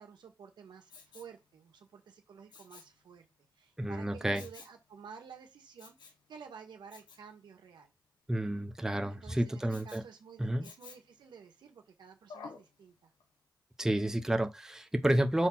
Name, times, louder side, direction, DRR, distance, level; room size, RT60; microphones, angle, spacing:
voice 1, 0.0-3.3 3.5-7.9 9.1-13.1, right 6 dB, 90° right, 1.7 m, -52 dB
Respiratory sounds, 0.9-1.4 2.5-3.0 4.3-4.8 5.8-6.2 6.9-7.3 9.7-10.1 10.6-11.2 12.3-12.7 13.2-13.3, left 4 dB, 90° left, 1.5 m, -51 dB
voice 2, 3.8-4.4 8.3-10.0 10.4-10.7 13.8-15.5, right 1 dB, 5° right, 0.9 m, -30 dB
6.1 x 4.0 x 5.9 m
cardioid pair, 80°, 8 cm